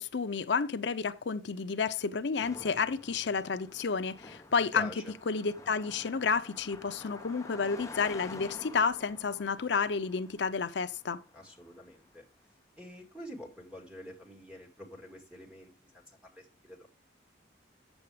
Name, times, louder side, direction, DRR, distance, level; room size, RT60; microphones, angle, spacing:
voice 1, 0.0-4.9 5.3-11.2, left 5 dB, 75° left, 0.6 m, -31 dB
Car passing by, 2.4-11.9, left 2 dB, 15° left, 0.8 m, -49 dB
voice 2, 4.7-5.1 11.3-12.2 12.8-16.9, left 1 dB, 5° right, 2.1 m, -46 dB
8.6 x 7.2 x 4.8 m
head